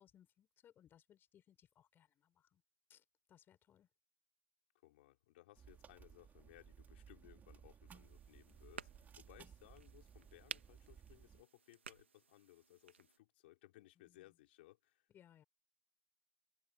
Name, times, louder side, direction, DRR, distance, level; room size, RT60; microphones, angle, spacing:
voice 1, 0.0-2.6 2.9-3.9 14.0-14.2 15.1-15.4, left 10 dB, 35° left, 5.8 m, -67 dB
voice 2, 4.8-15.1, left 18 dB, 65° left, 4.3 m, -63 dB
sound 1, 5.5-11.4, right 7 dB, 25° right, 3.7 m, -60 dB
sound 2, 7.9-13.2, right 6 dB, 80° right, 2.1 m, -55 dB
figure-of-eight pair, 85°, 6 cm